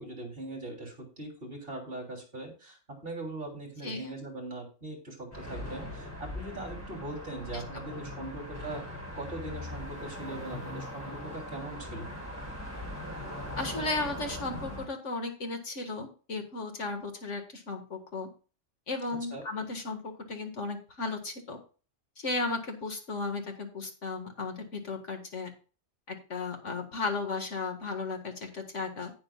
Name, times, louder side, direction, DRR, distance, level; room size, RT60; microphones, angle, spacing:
voice 1, 0.0-8.9 9.1-12.1 19.1-19.4, right 2 dB, 45° right, 0 dB, 3.5 m, -41 dB
voice 2, 3.8-4.1 7.5-7.6 8.2-8.3 13.6-18.3 18.9-21.6 22.2-25.5 26.1-29.1, left 3 dB, 70° left, 4 dB, 2.1 m, -35 dB
sound 1, 5.3-14.9, left 1 dB, 10° left, 4.7 m, -40 dB
17.5 x 6.5 x 2.4 m, 0.36 s
omnidirectional pair, 1.3 m